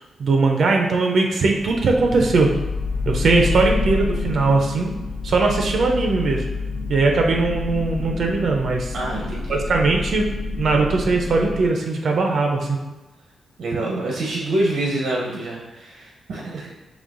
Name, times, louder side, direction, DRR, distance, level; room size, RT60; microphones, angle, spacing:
voice 1, 0.0-2.5 3.1-4.9 5.2-6.4 6.9-8.9 9.5-10.3 10.6-12.8, right 3 dB, 60° right, 1 dB, 0.5 m, -20 dB
sound 1, 1.5-11.7, left 3 dB, 45° left, 0.5 m, -28 dB
voice 2, 8.9-9.6 13.6-16.8, right 1 dB, 90° right, -2 dB, 0.7 m, -26 dB
5.4 x 3.1 x 2.5 m, 1.1 s
wide cardioid pair, 140°, 0 cm